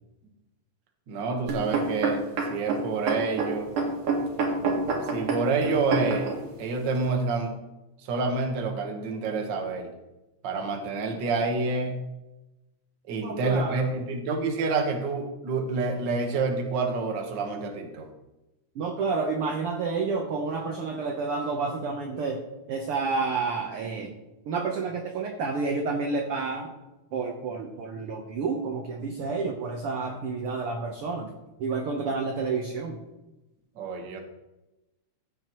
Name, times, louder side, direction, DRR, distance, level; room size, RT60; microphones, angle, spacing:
voice 1, 1.1-2.2 2.5-3.7 5.1-6.3 6.6-7.6 8.0-9.9 10.4-12.0 13.1-18.1 33.8-34.2, right 4 dB, 50° right, 3 dB, 1.4 m, -28 dB
sound 1, 1.5-6.4 7.1-7.2, right 4 dB, 80° right, 3.5 m, -27 dB
voice 2, 13.2-14.1 18.7-22.4 22.7-24.2 24.5-26.7 27.1-31.3 31.6-33.0, right 4 dB, 65° right, 3 dB, 1.5 m, -30 dB
15.5 x 9.0 x 3.1 m, 1.0 s
omnidirectional pair, 3.5 m